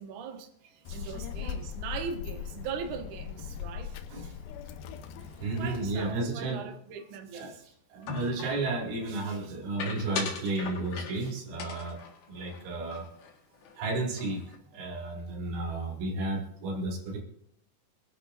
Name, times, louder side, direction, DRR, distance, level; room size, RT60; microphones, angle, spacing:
voice 1, 0.0-3.9 5.6-7.6 8.0-8.2, right 6 dB, 65° right, 3 dB, 2.1 m, -40 dB
Child speech kid speaking, 0.8-6.1, left 8 dB, 85° left, 2.1 m, -40 dB
voice 2, 5.4-6.6 7.3-7.5 7.9-12.0 12.3-13.1 13.8-14.4 14.7-17.2, right 2 dB, 85° right, 0 dB, 4.8 m, -33 dB
sound 1, 8.1-8.6 9.8-11.3 11.6-13.3 13.6-13.8 14.1-14.6, left 5 dB, 60° left, 3.1 m, -39 dB
26.5 x 10.0 x 2.6 m, 0.72 s
omnidirectional pair, 5.3 m